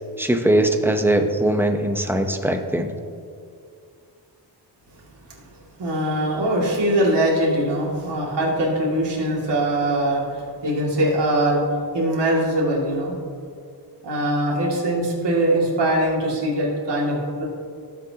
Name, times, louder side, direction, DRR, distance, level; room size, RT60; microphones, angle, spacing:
voice 1, 0.2-2.9, right 1 dB, 5° right, 5 dB, 0.9 m, -20 dB
voice 2, 5.8-11.7 11.9-13.1 14.0-17.4, right 1 dB, 85° right, -4 dB, 2.5 m, -22 dB
19.0 x 7.6 x 2.9 m, 2.3 s
wide cardioid pair, 105°, 41 cm